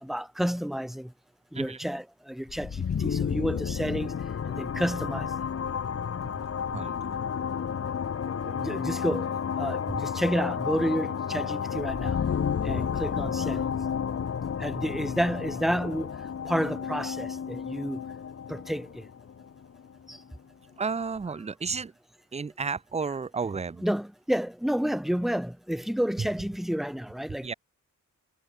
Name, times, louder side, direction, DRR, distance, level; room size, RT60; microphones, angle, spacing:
voice 1, 0.0-1.1 1.5-4.2 4.5-5.3 8.4-12.2 12.6-13.6 14.6-16.1 16.4-18.0 18.5-19.0 20.1-20.2 23.8-27.5, equal, ahead, 1.7 m, -30 dB
sound 1, 2.5-20.2, left 7 dB, 45° left, 0.8 m, -31 dB
voice 2, 6.7-7.2 20.8-21.9 22.3-23.8 27.4-27.5, right 5 dB, 20° right, 0.5 m, -32 dB
wide cardioid pair, 100°, 34 cm